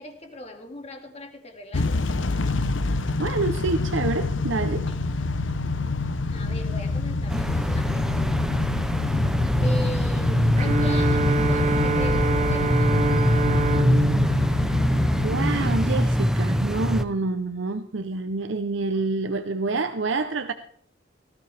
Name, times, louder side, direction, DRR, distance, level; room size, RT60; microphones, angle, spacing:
voice 1, 0.0-2.1 4.9-5.4 6.3-8.7 9.6-13.3, left 1 dB, 35° left, 2.3 m, -39 dB
Motor vehicle (road) / Engine starting / Accelerating revving vroom, 1.7-16.7, left 3 dB, 80° left, 0.8 m, -27 dB
voice 2, 3.2-4.9 15.2-20.5, right 3 dB, 75° right, 0.7 m, -27 dB
sound 1, 7.3-17.0, equal, 5° right, 0.7 m, -24 dB
Bowed string instrument, 10.6-15.8, right 2 dB, 40° right, 0.8 m, -26 dB
18.0 x 14.0 x 3.4 m
head